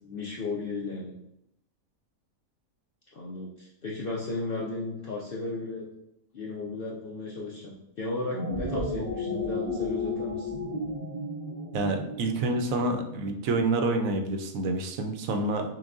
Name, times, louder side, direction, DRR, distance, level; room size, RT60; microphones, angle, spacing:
voice 1, 0.0-1.1 3.1-5.9 6.3-10.5, left 2 dB, 60° left, -4 dB, 0.5 m, -35 dB
sound 1, 8.2-12.7, left 2 dB, 60° right, 0.5 m, -33 dB
voice 2, 11.7-15.6, right 2 dB, 75° right, 4 dB, 1.0 m, -28 dB
5.8 x 2.2 x 2.5 m, 0.82 s
omnidirectional pair, 1.5 m